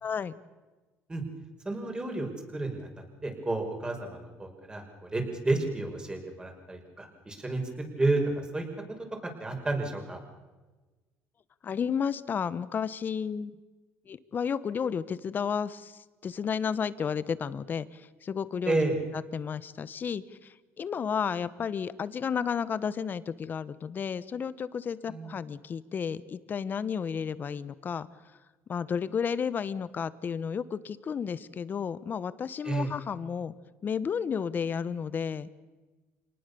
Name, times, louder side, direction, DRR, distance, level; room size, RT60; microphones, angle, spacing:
voice 1, 0.0-0.4 11.6-13.5 14.1-18.8 19.3-28.1 28.7-33.5 33.8-35.5, left 7 dB, 40° left, 16 dB, 1.1 m, -32 dB
voice 2, 1.6-8.7 9.2-10.2 18.6-19.0 25.1-25.4 32.6-32.9, right 2 dB, 15° right, 3 dB, 5.7 m, -31 dB
26.0 x 19.5 x 7.0 m, 1.2 s
cardioid pair, 100°, 5 cm